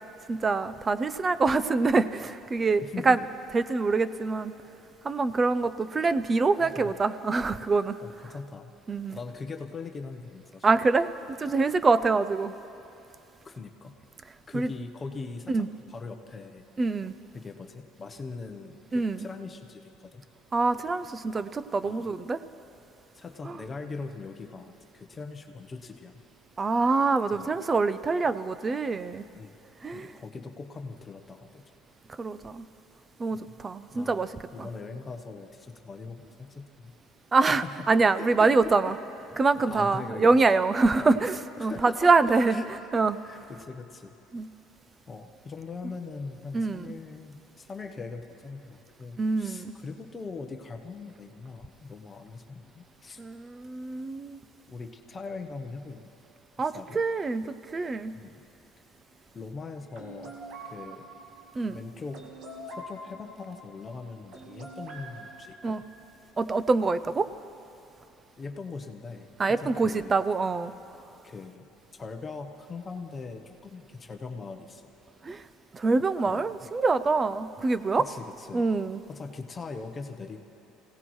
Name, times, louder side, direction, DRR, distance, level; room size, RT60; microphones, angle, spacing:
voice 1, 0.3-3.2 3.5-4.5 5.0-8.0 8.9-9.2 10.6-12.6 14.5-14.7 15.5-15.7 16.8-17.1 18.9-19.3 20.5-22.4 23.4-23.6 26.6-29.2 29.8-30.1 32.2-32.7 33.2-34.3 34.6-34.7 37.3-38.9 39.4-42.6 42.9-43.2 44.3-44.5 46.5-46.9 49.2-49.7 53.2-54.4 56.6-58.1 61.6-61.8 65.6-65.8 66.4-67.3 69.4-70.7 75.2-75.4 75.7-78.0 78.5-79.0, right 3 dB, 20° right, 14 dB, 0.4 m, -25 dB
voice 2, 2.8-3.2 6.6-7.0 8.0-8.7 9.1-10.7 13.4-13.9 14.5-16.6 17.3-20.2 21.8-22.1 23.1-26.2 27.3-27.6 29.3-29.6 29.9-31.7 33.3-33.5 33.9-34.2 34.5-36.9 37.5-37.9 38.2-39.0 39.6-40.4 41.0-41.3 41.6-42.7 43.2-44.1 45.1-53.2 54.7-56.1 56.6-57.0 58.1-58.4 59.3-60.4 60.6-61.1 61.7-62.3 62.7-65.8 68.4-70.2 71.2-71.7 71.9-74.8 76.2-76.5 77.9-78.7 79.1-80.4, left 4 dB, 20° left, 5 dB, 0.9 m, -41 dB
sound 1, 59.9-66.2, right 1 dB, 55° right, 1.8 m, -45 dB
26.0 x 17.5 x 3.2 m, 2.9 s
cardioid pair, 140°, 0 cm